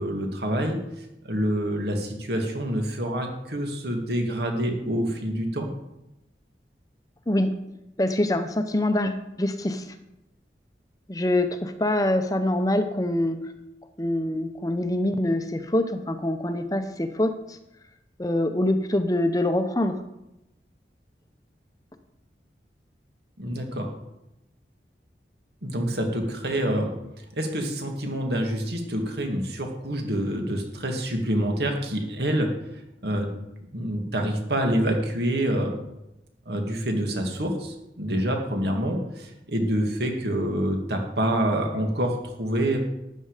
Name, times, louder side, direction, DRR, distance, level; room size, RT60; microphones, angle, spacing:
voice 1, 0.0-5.7 23.4-23.9 25.6-26.9 27.3-32.5 33.0-33.3 33.7-35.7 36.5-42.8, right 1 dB, 70° right, 3 dB, 2.4 m, -27 dB
voice 2, 8.0-9.8 11.1-13.5 14.0-17.6 18.2-20.0, left 1 dB, 20° left, 8 dB, 0.7 m, -25 dB
13.0 x 9.5 x 5.0 m, 0.89 s
head